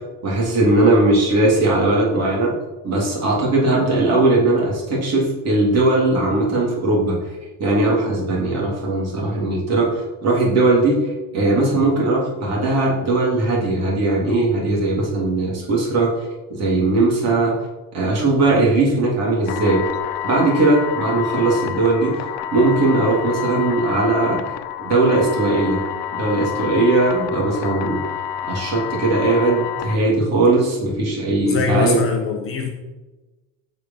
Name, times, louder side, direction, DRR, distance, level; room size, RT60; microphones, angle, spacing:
voice 1, 0.2-2.5 2.8-7.1 7.6-9.9 10.2-16.1 16.5-17.5 17.9-19.8 20.2-22.3 22.5-24.4 24.8-25.8 26.1-28.0 28.4-32.0, right 2 dB, 35° right, -3 dB, 3.5 m, -19 dB
sound 1, 19.5-30.0, left 11 dB, 50° left, 0.7 m, -29 dB
voice 2, 31.4-32.7, left 5 dB, 30° left, 2 dB, 1.2 m, -22 dB
15.5 x 5.3 x 5.9 m, 1.2 s
cardioid pair, 180°, 43 cm